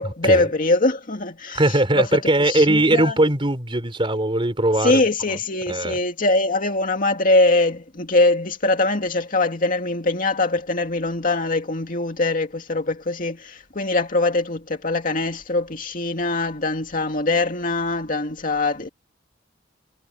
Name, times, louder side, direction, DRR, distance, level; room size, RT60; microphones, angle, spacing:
voice 1, 0.0-3.2 4.8-18.9, left 2 dB, 50° left, 2.3 m, -22 dB
voice 2, 1.5-5.0 5.3-5.4 5.7-6.0, right 1 dB, 30° right, 3.9 m, -20 dB
head